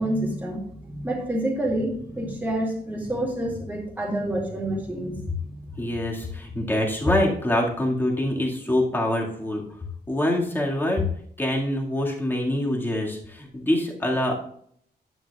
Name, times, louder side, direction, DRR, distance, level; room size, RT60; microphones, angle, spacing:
voice 1, 0.0-5.8, right 1 dB, 10° right, -3 dB, 2.3 m, -28 dB
voice 2, 5.8-9.6 10.1-11.1 11.4-14.4, left 1 dB, 10° left, -2 dB, 2.0 m, -25 dB
11.0 x 8.9 x 2.4 m, 0.65 s
wide cardioid pair, 140°, 17 cm